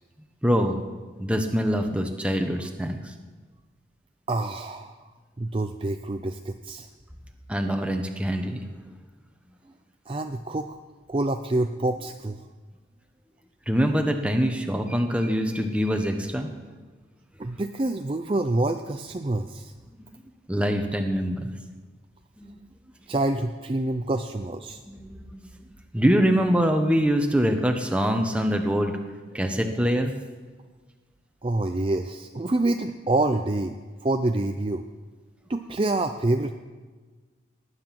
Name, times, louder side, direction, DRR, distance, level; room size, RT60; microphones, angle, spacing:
voice 1, 0.4-0.8 1.2-3.1 7.5-8.7 13.7-16.5 20.5-21.5 22.4-22.5 24.9-30.1, equal, 5° right, 5 dB, 1.1 m, -24 dB
voice 2, 4.3-5.0 5.4-6.9 10.1-10.7 11.1-12.4 17.4-19.7 23.1-24.8 31.4-33.8 34.0-34.8 35.5-36.5, right 2 dB, 30° right, 6 dB, 0.5 m, -27 dB
19.0 x 9.7 x 6.0 m, 1.4 s
head